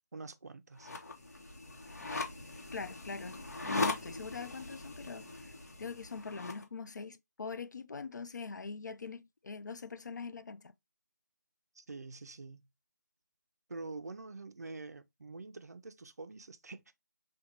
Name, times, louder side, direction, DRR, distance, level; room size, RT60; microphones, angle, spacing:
voice 1, 0.1-0.9 11.8-12.7 13.7-16.9, right 3 dB, 60° right, 0.4 m, -46 dB
sound 1, 0.8-6.6, left 3 dB, 55° left, 0.9 m, -40 dB
voice 2, 2.7-10.7, left 4 dB, 75° left, 0.4 m, -43 dB
3.7 x 2.2 x 2.9 m
figure-of-eight pair, 180°, 10 cm